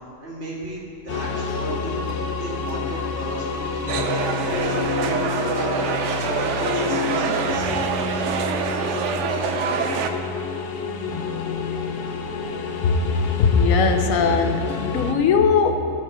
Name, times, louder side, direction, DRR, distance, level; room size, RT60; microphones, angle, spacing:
voice 1, 0.2-2.0 2.4-7.2 7.5-7.8, right 1 dB, 50° right, -5 dB, 2.2 m, -34 dB
sound 1, 1.1-15.1, left 5 dB, 55° left, 0.7 m, -28 dB
sound 2, 3.9-10.1, right 6 dB, 65° right, 0.9 m, -25 dB
voice 2, 13.4-15.9, left 5 dB, 75° left, 6 dB, 1.1 m, -19 dB
12.0 x 4.6 x 6.7 m, 2.4 s
omnidirectional pair, 1.4 m